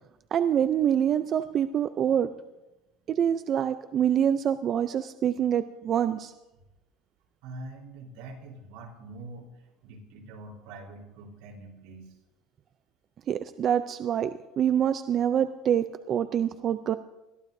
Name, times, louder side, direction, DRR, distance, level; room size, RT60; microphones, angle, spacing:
voice 1, 0.3-2.3 3.1-6.3 13.3-17.0, right 9 dB, 35° right, 11 dB, 0.4 m, -26 dB
voice 2, 7.4-9.5 9.8-12.1, right 2 dB, 80° right, 0 dB, 3.9 m, -44 dB
21.0 x 14.5 x 2.7 m, 0.99 s
cardioid pair, 140°, 0 cm